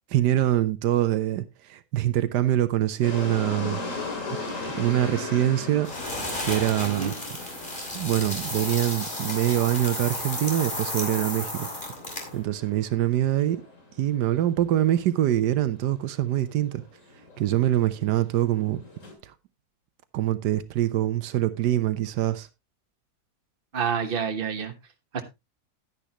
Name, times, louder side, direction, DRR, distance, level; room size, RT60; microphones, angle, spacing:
voice 1, 0.1-3.8 4.6-5.9 6.4-7.1 7.4-7.5 7.9-11.7 12.3-13.6 14.0-16.8 17.4-18.8 19.2-19.3 20.1-22.5, right 13 dB, 85° right, 1.3 m, -24 dB
sound 1, 3.0-19.1, left 3 dB, 50° left, 2.7 m, -39 dB
sound 2, 5.8-12.4, left 1 dB, 30° left, 2.8 m, -33 dB
voice 2, 23.7-24.7 25.1-25.2, right 7 dB, 35° right, 1.3 m, -28 dB
10.5 x 10.0 x 2.9 m
omnidirectional pair, 1.8 m